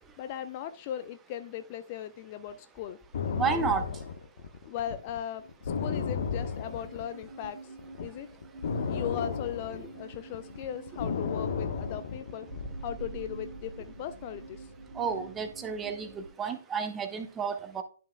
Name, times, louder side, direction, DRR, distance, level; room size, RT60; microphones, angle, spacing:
voice 1, 0.2-3.0 4.7-7.6 8.0-8.3 8.9-12.5 12.8-14.7, left 10 dB, 30° left, 10 dB, 0.4 m, -38 dB
sound 1, 3.1-7.5 7.8-12.7, left 5 dB, 50° left, 1.1 m, -33 dB
voice 2, 3.3-3.8 15.0-17.8, right 6 dB, 15° right, 9 dB, 0.8 m, -31 dB
sound 2, 5.0-16.3, right 3 dB, 55° right, 2.0 m, -46 dB
11.0 x 5.5 x 2.3 m, 0.40 s
figure-of-eight pair, 125°, 0 cm